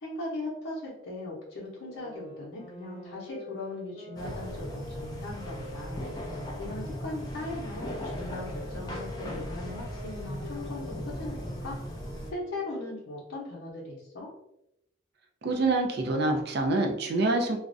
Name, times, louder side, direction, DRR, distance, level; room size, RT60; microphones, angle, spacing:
voice 1, 0.0-6.1 6.6-11.8 12.3-14.3, left 2 dB, 80° left, -9 dB, 0.7 m, -39 dB
sound 1, 1.8-7.0 7.5-13.1, left 1 dB, ahead, 1.0 m, -47 dB
sound 2, 4.2-12.3, equal, 20° left, 0.4 m, -37 dB
voice 2, 15.4-17.6, right 2 dB, 50° right, 3 dB, 0.4 m, -26 dB
2.4 x 2.1 x 2.5 m, 0.82 s
head